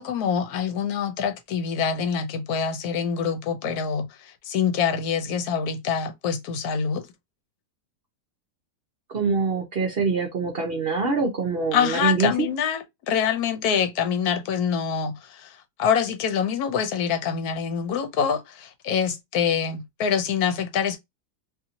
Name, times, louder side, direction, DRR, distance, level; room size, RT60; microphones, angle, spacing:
voice 1, 0.0-7.1 11.7-21.0, left 7 dB, 75° left, 1.1 m, -25 dB
voice 2, 9.1-12.5, right 4 dB, 55° right, 0.7 m, -24 dB
2.7 x 2.6 x 2.7 m
omnidirectional pair, 1.6 m